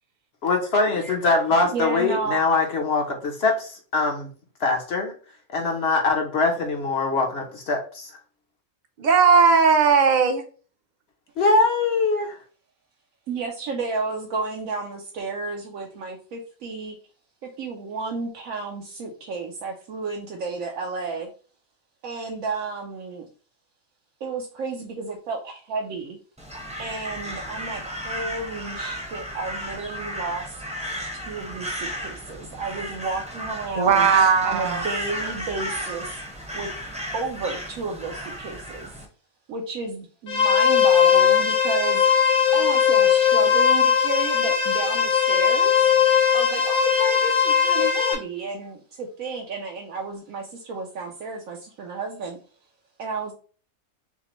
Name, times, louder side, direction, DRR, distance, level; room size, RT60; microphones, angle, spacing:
voice 1, 0.4-4.3 4.6-5.1 5.5-8.1 11.4-12.4, left 3 dB, 55° left, 2 dB, 1.0 m, -22 dB
voice 2, 1.6-2.4 13.3-17.0 17.4-21.3 22.0-23.3 24.2-26.2 26.8-30.6 31.3-34.1 34.4-36.2 36.5-36.7 37.1-38.9 39.5-42.1 42.5-45.8 46.3-52.4 53.0-53.3, right 4 dB, 75° right, 1 dB, 1.1 m, -32 dB
voice 3, 9.0-10.4 33.8-34.8, right 5 dB, 45° right, 5 dB, 0.6 m, -17 dB
Crow, 26.4-39.1, equal, 5° right, 0.7 m, -34 dB
sound 1, 40.3-48.1, left 8 dB, 80° left, 1.2 m, -19 dB
5.8 x 2.1 x 3.0 m, 0.39 s
omnidirectional pair, 1.4 m